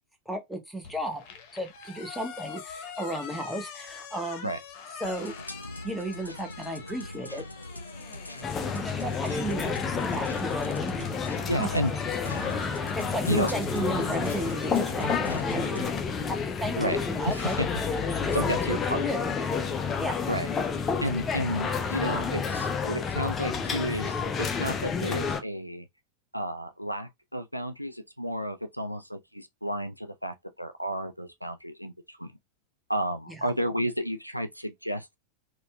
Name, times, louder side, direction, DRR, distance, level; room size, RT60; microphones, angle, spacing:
voice 1, 0.3-1.2 1.5-4.5 5.0-5.3 5.8-7.4 8.7-11.1 11.6-11.8 12.9-17.6 18.1-19.7 20.0-20.3 33.3-33.5, right 1 dB, ahead, 0.8 m, -34 dB
sound 1, 0.8-11.1, left 6 dB, 45° left, 0.8 m, -45 dB
sound 2, 5.0-15.9, left 1 dB, 90° left, 0.3 m, -41 dB
sound 3, 8.4-25.4, left 5 dB, 25° left, 0.4 m, -30 dB
voice 2, 11.5-11.9 13.3-13.5 16.8-17.0 17.2-17.8 18.3-19.0 20.3-20.5 21.0-25.9 26.3-32.3 32.9-35.2, equal, 90° right, 0.3 m, -31 dB
4.0 x 2.2 x 2.2 m
figure-of-eight pair, 90°, 0 cm